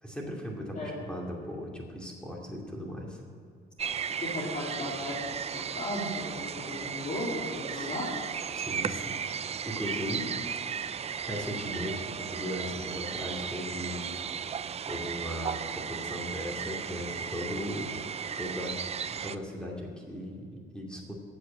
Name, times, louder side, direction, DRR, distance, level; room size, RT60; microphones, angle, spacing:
voice 1, 0.0-3.2 7.7-7.9 8.5-9.2 9.6-10.3 11.1-14.1 14.9-17.9 18.4-18.8 19.1-21.2, equal, 5° left, -2 dB, 2.4 m, -37 dB
sound 1, 3.8-19.4, right 7 dB, 30° right, 0.4 m, -35 dB
voice 2, 4.1-8.0, left 1 dB, 40° left, -8 dB, 3.4 m, -36 dB
8.1 x 7.7 x 8.5 m, 2.3 s
cardioid pair, 90°, 20 cm